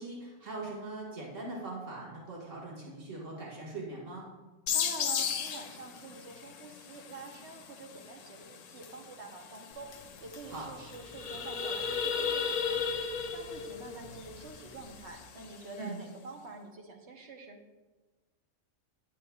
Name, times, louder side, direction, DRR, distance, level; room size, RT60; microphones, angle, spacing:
voice 1, 0.0-4.3 10.5-10.7 15.8-16.0, right 2 dB, 80° right, -4 dB, 1.8 m, -41 dB
sound 1, 4.7-16.0, left 8 dB, 80° left, 0.9 m, -40 dB
voice 2, 4.7-9.9 10.2-13.0 13.3-17.6, right 3 dB, 60° right, 2 dB, 1.2 m, -47 dB
sound 2, 9.8-9.9 10.2-10.4 10.7-15.1, left 5 dB, 55° left, 0.4 m, -34 dB
9.7 x 7.5 x 2.3 m, 1.2 s
omnidirectional pair, 1.3 m